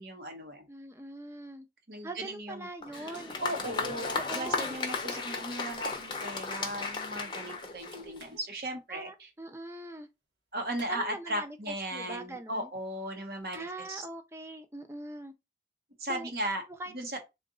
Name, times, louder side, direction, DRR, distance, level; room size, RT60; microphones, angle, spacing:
voice 1, 0.0-0.6 1.9-2.7 2.9-3.1 3.4-9.3 10.5-14.0 16.0-16.6 16.9-17.2, right 1 dB, 60° right, 1.0 m, -37 dB
voice 2, 0.7-1.7 2.0-3.3 4.1-4.7 8.9-10.1 10.9-12.7 13.5-15.3 16.1-16.3 16.8-16.9, right 2 dB, 15° right, 0.5 m, -42 dB
Applause, 2.8-8.4, left 4 dB, 25° left, 0.6 m, -35 dB
sound 1, 8.2-8.9 10.8-11.6 13.5-13.7, right 3 dB, 85° right, 1.3 m, -55 dB
3.8 x 2.5 x 3.7 m
head